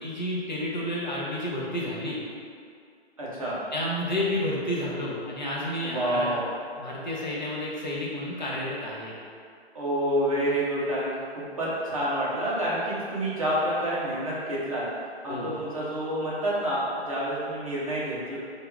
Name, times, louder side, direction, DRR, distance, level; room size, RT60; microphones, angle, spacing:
voice 1, 0.0-2.2 3.7-6.4 6.8-9.1 15.3-15.5, left 1 dB, 45° left, -5 dB, 0.6 m, -30 dB
voice 2, 3.2-3.6 5.8-6.4 9.7-14.9 15.2-18.4, right 1 dB, 30° right, -8 dB, 0.6 m, -28 dB
2.9 x 2.3 x 3.6 m, 2.3 s
hypercardioid pair, 175°, 33 cm